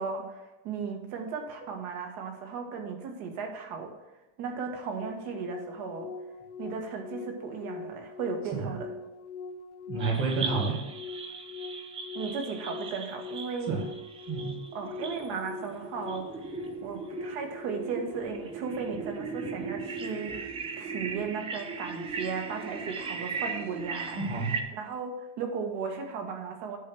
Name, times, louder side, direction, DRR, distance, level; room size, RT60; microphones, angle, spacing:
voice 1, 0.0-3.9 4.4-6.1 6.6-8.9 12.1-13.8 14.7-16.3 16.8-24.2 24.7-26.8, right 5 dB, 55° right, 3 dB, 1.6 m, -36 dB
sound 1, 5.0-18.2, left 4 dB, 70° left, 0.7 m, -42 dB
voice 2, 9.9-10.8 13.7-13.9 14.3-14.6 20.2-20.4 24.2-24.6, right 4 dB, 35° right, -1 dB, 2.0 m, -30 dB
sound 2, 10.0-24.6, right 4 dB, 15° right, 0.4 m, -38 dB
9.8 x 3.4 x 6.1 m, 0.99 s
supercardioid pair, 145°, 37 cm